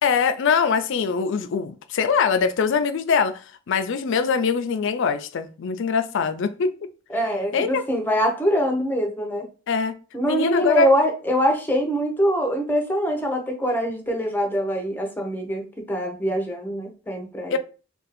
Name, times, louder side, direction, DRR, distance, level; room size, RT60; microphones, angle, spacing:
voice 1, 0.0-3.4 3.7-6.9 7.5-7.8 9.7-9.9 10.3-10.9 17.5-17.6, left 5 dB, 60° left, 0.4 m, -22 dB
voice 2, 7.1-9.5 10.1-17.6, equal, 10° left, 0.6 m, -23 dB
2.6 x 2.3 x 4.1 m
head